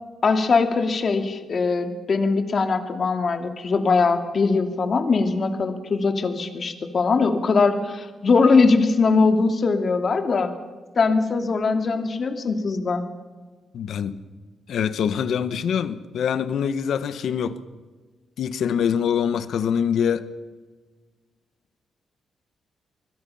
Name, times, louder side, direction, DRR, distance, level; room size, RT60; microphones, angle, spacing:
voice 1, 0.2-10.5 11.0-13.0, left 4 dB, 45° left, 2.5 m, -21 dB
voice 2, 13.7-14.2 14.7-17.6 18.4-20.3, left 8 dB, 75° left, 1.3 m, -24 dB
26.5 x 21.5 x 5.7 m
cardioid pair, 120°, 0 cm